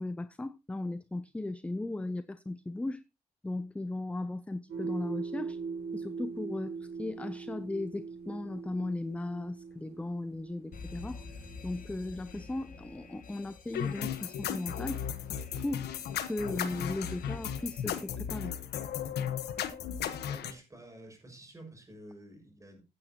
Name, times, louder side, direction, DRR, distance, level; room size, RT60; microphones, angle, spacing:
voice 1, 0.0-3.0 3.4-5.6 5.9-11.2 11.6-15.0 15.6-15.9 16.2-18.5, left 2 dB, 10° left, 0.5 m, -37 dB
sound 1, 4.7-13.2, right 5 dB, 75° right, 5.5 m, -42 dB
Alarm, 10.7-18.4, left 5 dB, 55° left, 1.5 m, -50 dB
sound 2, 13.7-20.5, left 9 dB, 90° left, 1.2 m, -35 dB
voice 2, 20.2-22.8, right 1 dB, 20° right, 5.9 m, -50 dB
15.5 x 9.0 x 2.9 m
cardioid pair, 105°, 17 cm